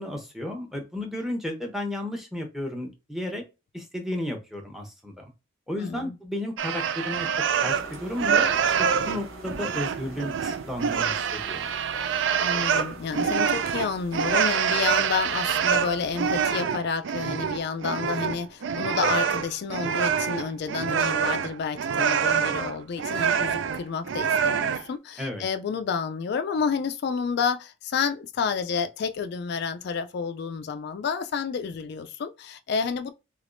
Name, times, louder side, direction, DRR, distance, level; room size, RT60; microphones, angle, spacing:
voice 1, 0.0-3.4 3.7-5.2 5.7-7.3 7.6-11.7 25.2-25.4, left 1 dB, ahead, 0.7 m, -33 dB
voice 2, 5.8-6.1 12.4-33.1, left 5 dB, 55° left, 0.3 m, -30 dB
sound 1, 6.6-7.9 8.2-24.9, right 7 dB, 65° right, 0.4 m, -26 dB
sound 2, 7.7-16.5, right 2 dB, 90° right, 1.0 m, -44 dB
3.4 x 3.1 x 2.5 m
head